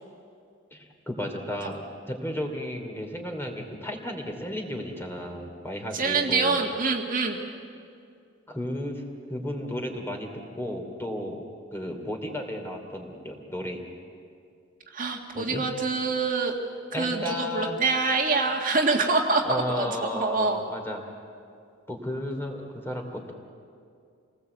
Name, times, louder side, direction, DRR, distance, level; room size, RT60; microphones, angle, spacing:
voice 1, 0.7-6.6 8.5-9.0 9.3-11.4 11.7-13.8 15.3-15.6 16.9-17.8 19.4-21.0 21.9-23.3, equal, 10° left, 2 dB, 2.9 m, -33 dB
voice 2, 5.9-7.4 14.9-16.6 17.0-19.9 20.1-20.6, right 3 dB, 45° right, 1 dB, 1.8 m, -25 dB
28.0 x 19.0 x 8.1 m, 2.3 s
head